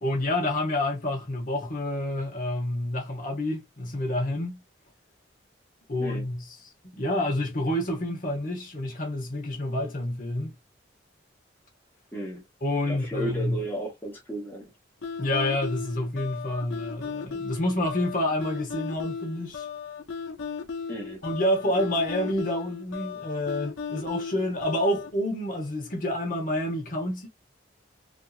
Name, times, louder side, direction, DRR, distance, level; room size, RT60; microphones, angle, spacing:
voice 1, 0.0-4.6 5.9-6.5 6.8-10.5 12.6-13.6 15.2-19.7 21.2-27.3, left 1 dB, 45° left, 1.1 m, -28 dB
voice 2, 12.1-12.4 12.9-14.7 20.9-21.2, right 1 dB, 10° left, 1.1 m, -34 dB
sound 1, 15.0-25.1, left 5 dB, 85° left, 0.7 m, -36 dB
3.4 x 2.9 x 2.4 m
head